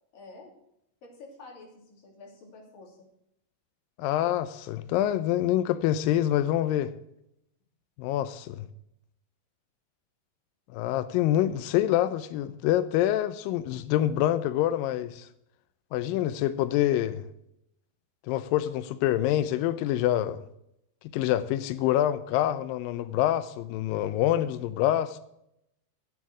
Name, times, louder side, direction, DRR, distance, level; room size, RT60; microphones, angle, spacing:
voice 1, 0.1-0.5 1.0-3.0, left 3 dB, 60° left, 4.4 m, -49 dB
voice 2, 4.0-6.9 8.0-8.7 10.7-15.3 15.9-17.2 18.3-20.4 21.1-25.2, left 12 dB, 80° left, 2.0 m, -26 dB
12.0 x 8.0 x 6.1 m
omnidirectional pair, 4.6 m